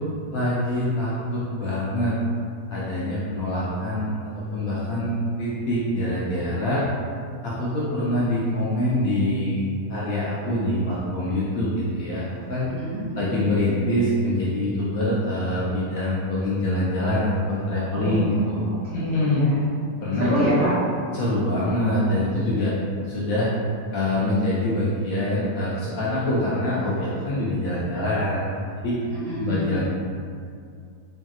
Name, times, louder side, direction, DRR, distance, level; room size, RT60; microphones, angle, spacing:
voice 1, 0.3-2.1 2.7-6.8 7.4-9.6 9.9-12.7 13.2-18.7 18.9-19.5 20.0-20.4 21.1-22.7 23.1-23.5 23.9-28.5 28.8-28.9 29.4-29.9, left 1 dB, 70° left, -8 dB, 0.8 m, -25 dB
voice 2, 12.6-13.4 17.9-19.6 20.2-20.7 29.1-29.9, equal, 75° right, -11 dB, 1.4 m, -27 dB
3.1 x 2.6 x 2.3 m, 2.3 s
omnidirectional pair, 1.9 m